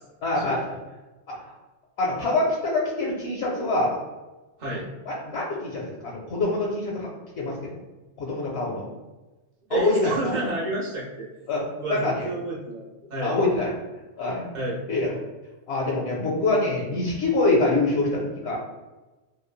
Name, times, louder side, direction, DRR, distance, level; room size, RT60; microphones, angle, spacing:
voice 1, 0.2-0.8 1.3-1.5 2.0-4.0 5.1-7.1 7.4-7.8 8.2-8.9 9.7-10.4 11.5-11.6 11.9-12.3 13.2-13.7 14.2-14.4 14.9-15.1 15.7-18.6, left 2 dB, 65° left, -3 dB, 0.8 m, -25 dB
voice 2, 9.7-11.3 11.8-13.3 14.5-14.8, right 2 dB, 45° right, -5 dB, 0.8 m, -29 dB
3.1 x 2.2 x 2.2 m, 1.1 s
omnidirectional pair, 1.3 m